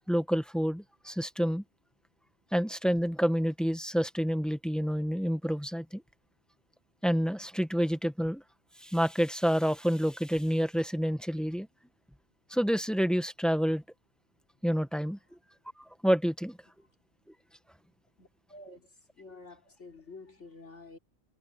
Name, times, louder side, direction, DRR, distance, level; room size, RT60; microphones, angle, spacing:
voice 1, 0.1-1.6 2.5-6.0 7.0-8.4 8.8-11.7 12.5-13.8 14.6-15.2 16.0-16.6, equal, ahead, 1.1 m, -28 dB
voice 2, 18.2-21.0, left 3 dB, 75° left, 3.4 m, -50 dB
omnidirectional pair, 1.2 m